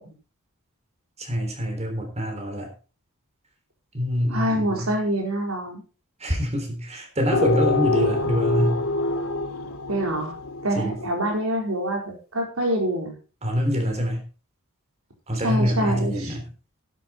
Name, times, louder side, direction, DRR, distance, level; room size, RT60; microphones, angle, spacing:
voice 1, 1.2-2.7 3.9-4.9 6.2-8.8 10.8-11.0 13.4-14.2 15.3-16.5, equal, 30° right, 4 dB, 3.5 m, -25 dB
voice 2, 4.3-5.8 9.9-10.3 10.6-13.1 15.4-16.3, right 1 dB, 75° right, 2 dB, 4.2 m, -25 dB
sound 1, 7.3-11.3, left 2 dB, 80° left, 2.4 m, -26 dB
11.5 x 9.2 x 4.3 m, 0.36 s
head